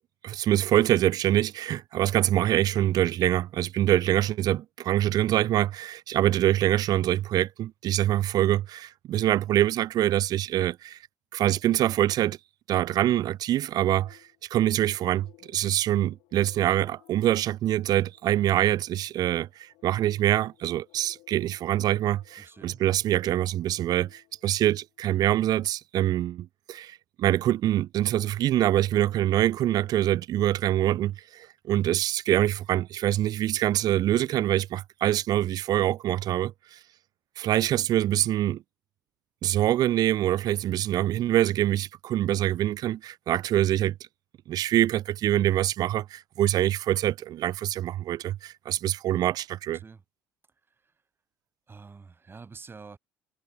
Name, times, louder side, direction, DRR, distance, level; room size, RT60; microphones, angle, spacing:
voice 1, 0.2-11.0 11.3-12.4 12.7-14.2 14.5-36.8 37.4-38.6 39.4-43.9 44.5-49.8, right 13 dB, 55° right, 0.7 m, -25 dB
sound 1, 13.8-25.1, left 23 dB, 70° left, 7.2 m, -60 dB
voice 2, 22.4-22.8 49.7-50.0 50.8-50.9 51.7-53.0, right 4 dB, 30° right, 4.1 m, -47 dB
hypercardioid pair, 60°, 8 cm